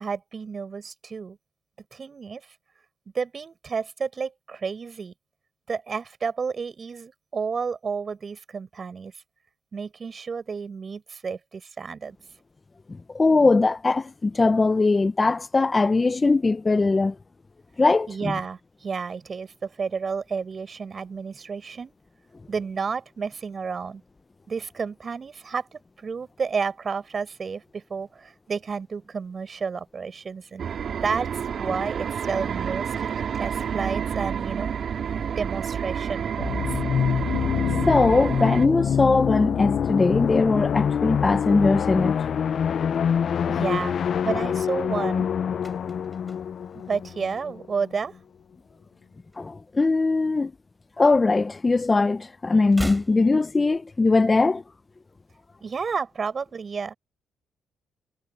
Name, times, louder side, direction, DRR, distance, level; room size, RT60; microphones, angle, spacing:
voice 1, 0.0-1.4 1.9-2.4 3.1-5.1 5.7-9.1 9.7-12.2 18.1-21.9 22.5-24.0 24.5-30.7 31.0-31.3 31.6-34.7 35.4-36.8 43.5-44.0 44.2-45.3 46.7-48.1 55.6-56.9, right 5 dB, 40° right, 7.5 m, -31 dB
voice 2, 12.9-17.2 17.8-18.3 37.9-42.2 49.4-50.5 51.0-54.6, left 3 dB, 25° left, 0.8 m, -21 dB
sound 1, 30.6-38.7, right 7 dB, 55° right, 4.2 m, -29 dB
sound 2, 36.4-47.9, left 8 dB, 55° left, 0.6 m, -25 dB
sound 3, 45.5-47.9 48.2-48.5 48.8-50.2 50.5-51.9 52.1-54.2 54.5-54.6, right 1 dB, 5° right, 5.4 m, -40 dB
cardioid pair, 90°, 0 cm